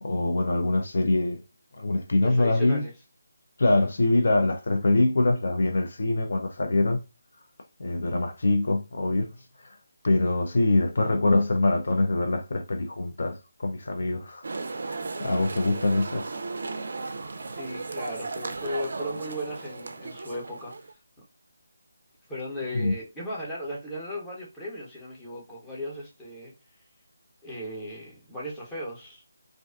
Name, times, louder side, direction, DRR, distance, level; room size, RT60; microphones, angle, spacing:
voice 1, 0.0-1.4 1.8-2.8 3.6-7.0 7.8-9.3 9.6-9.8 10.0-14.5 14.8-16.3 22.7-22.9, left 2 dB, 60° left, 0.4 m, -24 dB
voice 2, 2.2-2.9 17.5-20.9 22.3-26.5 27.4-29.2, equal, 10° left, 0.8 m, -36 dB
sound 1, 14.4-20.9, right 3 dB, 60° right, 0.3 m, -35 dB
2.4 x 2.2 x 2.3 m
figure-of-eight pair, 155°, 0 cm